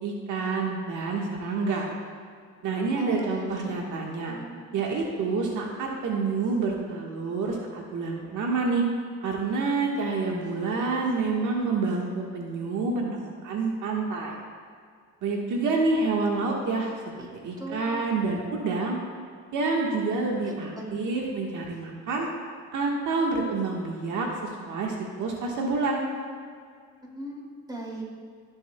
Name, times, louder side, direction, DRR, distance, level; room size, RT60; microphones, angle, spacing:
voice 1, 0.0-1.9 2.6-4.4 4.7-8.8 9.2-14.3 15.2-16.9 17.2-19.0 19.5-22.3 22.7-24.3 24.6-26.0, right 3 dB, 80° right, -1 dB, 1.5 m, -28 dB
voice 2, 3.0-3.7 4.3-4.8 17.2-17.3 17.6-18.5 20.5-21.0 27.0-28.0, right 1 dB, 15° right, -3 dB, 2.7 m, -39 dB
18.0 x 7.8 x 2.3 m, 2.1 s
cardioid pair, 90°, 30 cm